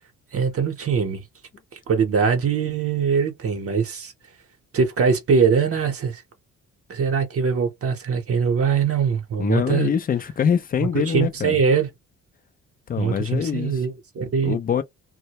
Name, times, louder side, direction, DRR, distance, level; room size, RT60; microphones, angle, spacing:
voice 1, 0.3-1.2 1.7-4.1 4.7-6.2 6.9-9.9 11.1-11.9 13.0-14.6, right 6 dB, 50° right, 0.8 m, -22 dB
voice 2, 9.4-11.6 12.9-13.8 14.4-14.8, left 7 dB, 30° left, 0.4 m, -24 dB
2.1 x 2.1 x 2.8 m
cardioid pair, 90°, 30 cm